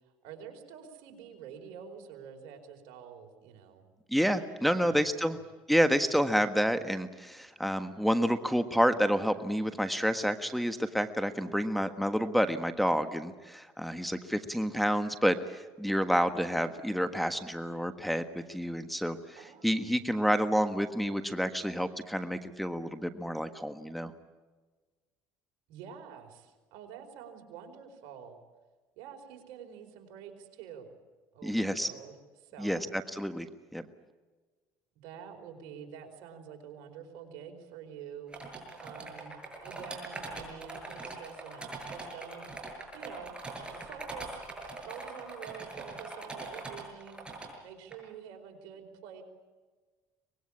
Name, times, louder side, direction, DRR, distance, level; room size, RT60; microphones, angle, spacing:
voice 1, 0.2-3.8 4.7-5.2 19.4-20.0 25.7-28.4 29.0-30.9 31.3-32.9 35.0-43.3 43.7-44.5 44.9-47.2 47.6-49.2, right 7 dB, 80° right, 4 dB, 4.7 m, -48 dB
voice 2, 4.1-5.4 5.7-19.4 19.6-24.1 31.4-31.9 32.6-33.5 33.7-33.8, equal, ahead, 8 dB, 1.4 m, -29 dB
sound 1, 38.3-47.5 47.9-48.0, right 3 dB, 15° right, 7.3 m, -42 dB
24.5 x 20.5 x 8.7 m, 1.3 s
supercardioid pair, 95°, 7 cm